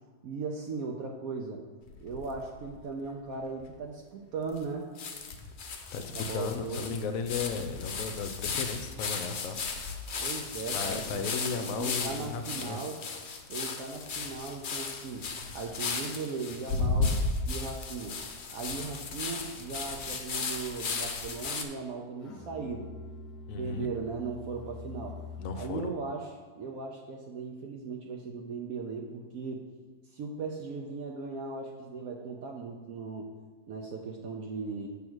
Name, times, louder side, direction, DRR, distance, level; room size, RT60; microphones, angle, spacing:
voice 1, 0.2-1.6 2.0-4.9 6.1-6.9 10.2-13.0 13.5-15.3 15.5-17.2 17.5-18.2 18.5-22.9 23.6-25.2 25.6-29.7 30.1-33.3 33.7-34.9, right 4 dB, 70° right, 1 dB, 1.0 m, -38 dB
sound 1, 1.9-2.8 3.3-3.4 3.6-3.7 4.6-4.7 5.0-21.6, left 4 dB, 85° left, 0.4 m, -35 dB
voice 2, 5.9-9.6 10.7-12.8 23.5-23.9 25.4-25.9, left 5 dB, 70° left, 7 dB, 0.9 m, -35 dB
Musical instrument, 22.2-25.7, left 3 dB, 35° left, 0.8 m, -44 dB
7.5 x 3.5 x 6.1 m, 1.5 s
omnidirectional pair, 1.7 m